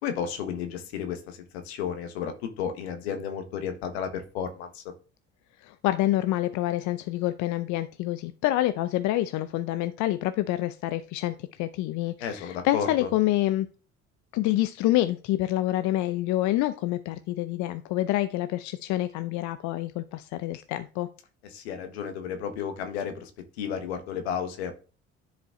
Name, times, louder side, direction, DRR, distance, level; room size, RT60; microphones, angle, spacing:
voice 1, 0.0-4.8 12.2-13.1 21.5-23.3 23.6-24.8, left 7 dB, 90° left, 6 dB, 1.4 m, -33 dB
voice 2, 5.6-13.7 14.3-21.1, left 15 dB, 65° left, 12 dB, 0.6 m, -27 dB
10.5 x 4.8 x 3.7 m, 0.36 s
hypercardioid pair, 65°, 31 cm